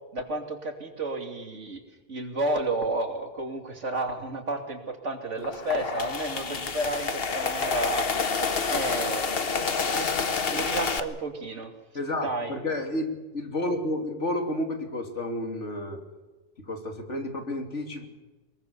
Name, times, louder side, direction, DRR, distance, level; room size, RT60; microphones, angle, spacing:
voice 1, 0.1-1.8 2.1-8.4 8.7-10.1 10.5-11.7 12.2-12.6, right 2 dB, 85° right, 4 dB, 3.1 m, -31 dB
sound 1, 5.4-11.0, left 5 dB, 55° left, 1.4 m, -28 dB
voice 2, 11.9-16.0 16.7-18.1, left 1 dB, 80° left, 4 dB, 3.2 m, -31 dB
23.0 x 21.5 x 7.0 m, 1.2 s
omnidirectional pair, 1.2 m